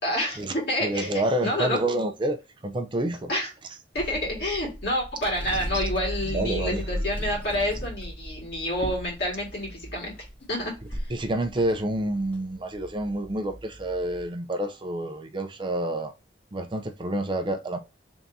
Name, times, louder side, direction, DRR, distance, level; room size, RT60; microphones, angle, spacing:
voice 1, 0.0-1.8 3.3-3.5 3.9-10.1 10.5-11.1, left 1 dB, 60° left, 2.0 m, -29 dB
voice 2, 0.8-2.4 2.6-3.3 6.3-6.9 11.1-16.1 16.5-17.8, right 1 dB, 25° right, 0.5 m, -28 dB
sound 1, 3.9-14.3, equal, 10° left, 1.0 m, -36 dB
3.5 x 2.7 x 3.9 m
head